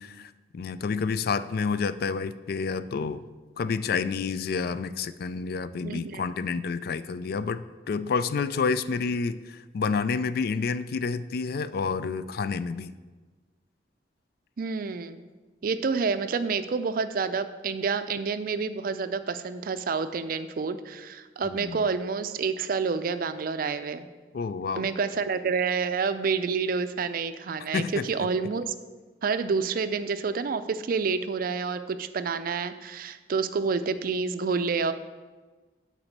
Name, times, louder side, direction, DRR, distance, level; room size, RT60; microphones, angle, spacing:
voice 1, 0.0-3.3 3.6-12.9 21.5-21.8 24.3-24.9 27.7-28.3, left 5 dB, 60° left, 13 dB, 0.3 m, -29 dB
voice 2, 5.8-6.2 14.6-15.2 15.6-24.1 24.8-28.7 29.2-34.9, right 5 dB, 55° right, 11 dB, 0.4 m, -28 dB
8.9 x 4.2 x 6.5 m, 1.3 s
head